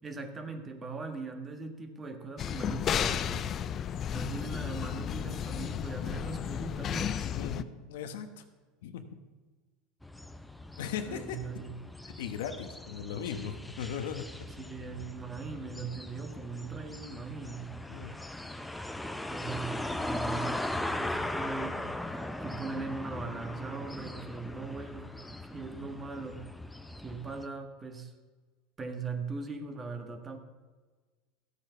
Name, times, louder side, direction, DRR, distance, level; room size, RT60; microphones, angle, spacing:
voice 1, 0.0-3.5 4.1-7.3 11.0-11.7 14.6-17.8 19.3-21.8 22.1-25.1 25.5-26.5 27.0-28.1 28.8-30.4, right 4 dB, 25° right, 6 dB, 1.7 m, -40 dB
sound 1, 2.4-7.6, left 9 dB, 40° left, 0.5 m, -33 dB
voice 2, 7.3-8.4 8.8-9.2 10.8-11.4 12.0-14.5 17.9-18.1, left 7 dB, 80° left, 8 dB, 1.2 m, -38 dB
sound 2, 10.0-27.5, left 1 dB, 5° left, 0.8 m, -39 dB
13.5 x 8.4 x 5.8 m, 1.4 s
hypercardioid pair, 100°, 0 cm